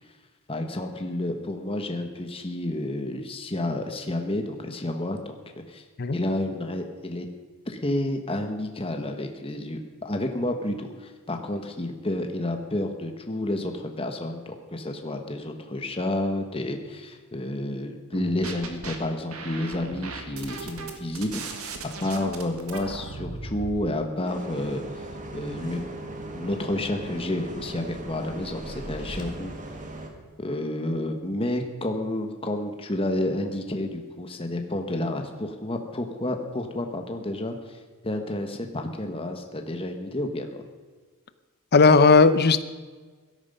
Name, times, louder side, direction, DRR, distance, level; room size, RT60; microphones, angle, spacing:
voice 1, 0.5-5.8 6.1-7.2 7.6-21.7 22.0-24.8 25.3-25.8 26.3-29.5 30.4-37.8 38.0-40.6, left 1 dB, 25° left, 5 dB, 1.3 m, -30 dB
sound 1, 18.1-19.0 19.3-23.7, right 3 dB, 70° right, 2.0 m, -37 dB
Bus, 24.2-30.1, right 2 dB, 35° right, 1.9 m, -38 dB
sound 2, 27.4-29.2, equal, 75° left, 2.4 m, -45 dB
voice 2, 41.7-42.6, left 4 dB, 45° left, 13 dB, 0.7 m, -16 dB
17.0 x 13.0 x 5.5 m, 1.4 s
head